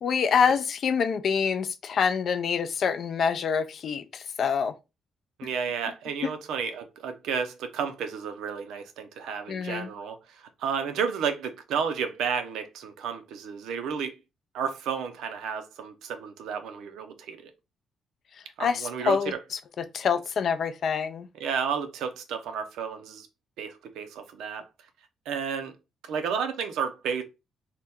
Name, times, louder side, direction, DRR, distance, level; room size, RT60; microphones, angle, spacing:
voice 1, 0.0-4.7 6.2-6.3 9.5-9.9 18.6-19.3 19.9-21.3, left 6 dB, 60° left, 0.4 m, -26 dB
voice 2, 5.4-14.1 14.5-17.5 18.6-19.4 21.4-23.3 23.6-24.6 25.3-25.7 26.0-27.2, right 6 dB, 85° right, 0.5 m, -32 dB
2.8 x 2.2 x 3.4 m
cardioid pair, 90°, 0 cm